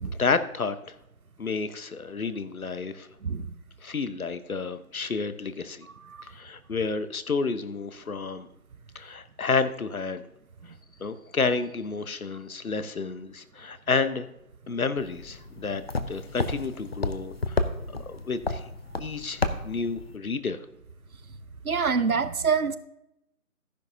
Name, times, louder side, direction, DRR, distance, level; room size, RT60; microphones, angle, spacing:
voice 1, 0.0-0.9 1.4-3.1 3.8-5.9 6.3-8.5 8.9-10.2 11.0-14.3 14.7-17.7 18.1-18.6 19.0-20.6, left 4 dB, 70° left, 12 dB, 1.1 m, -30 dB
voice 2, 3.2-3.5 6.0-6.2 21.6-22.8, right 5 dB, 70° right, 13 dB, 0.9 m, -26 dB
sound 1, 15.0-20.2, left 3 dB, 45° left, 0.8 m, -32 dB
13.5 x 10.5 x 2.7 m, 0.84 s
figure-of-eight pair, 160°, 44 cm